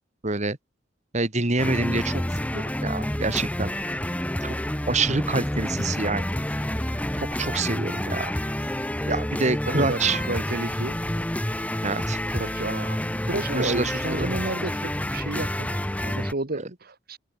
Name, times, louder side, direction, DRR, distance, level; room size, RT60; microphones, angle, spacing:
voice 1, 0.2-0.6 1.1-3.7 4.4-4.6 4.9-6.2 7.2-8.3 9.1-10.2 11.8-12.2 13.5-14.4, right 3 dB, 40° right, 2.3 m, -27 dB
sound 1, 1.6-16.3, left 1 dB, 10° left, 1.2 m, -28 dB
voice 2, 9.7-11.2 12.3-17.2, right 2 dB, 55° right, 1.7 m, -32 dB
open air
head